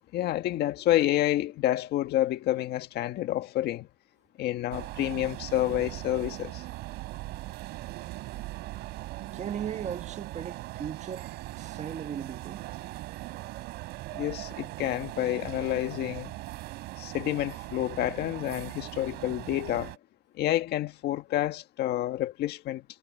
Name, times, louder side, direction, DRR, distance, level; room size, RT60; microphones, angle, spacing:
voice 1, 0.1-3.9 4.4-6.6 14.1-16.3 17.0-19.9 20.4-23.0, left 14 dB, 75° left, 1.6 m, -29 dB
sound 1, 4.7-20.0, right 18 dB, 90° right, 4.0 m, -40 dB
voice 2, 9.3-12.6, right 8 dB, 45° right, 1.4 m, -37 dB
cardioid pair, 110°, 17 cm